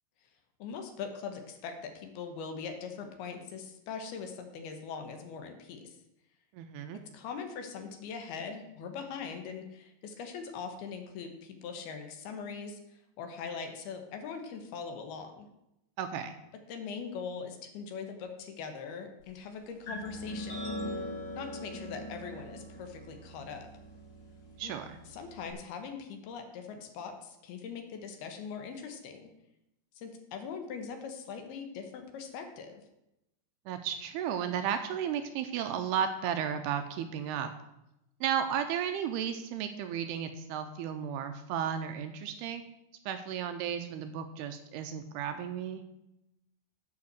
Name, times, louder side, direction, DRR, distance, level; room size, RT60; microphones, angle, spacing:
voice 1, 0.6-6.0 6.9-15.5 16.7-20.9 21.3-23.7 24.6-24.7 25.1-29.3 30.0-32.8, left 6 dB, 70° left, 5 dB, 2.8 m, -41 dB
voice 2, 6.5-7.0 16.0-16.4 24.6-25.0 33.7-37.5 38.2-42.6 43.1-45.8, right 8 dB, 85° right, 7 dB, 2.5 m, -34 dB
sound 1, 19.9-25.5, equal, 55° left, 4.4 m, -41 dB
9.5 x 5.8 x 8.0 m, 0.87 s
omnidirectional pair, 5.0 m